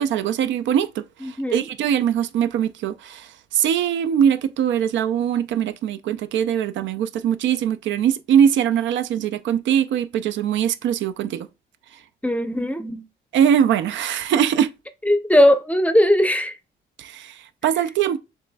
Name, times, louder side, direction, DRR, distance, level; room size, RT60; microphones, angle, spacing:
voice 1, 0.0-11.5 13.3-14.7 17.0-18.2, right 9 dB, 70° right, 0.4 m, -22 dB
voice 2, 1.2-1.7 12.2-13.0 15.1-16.5, left 1 dB, 5° left, 0.6 m, -19 dB
7.1 x 2.5 x 2.2 m
cardioid pair, 90°, 20 cm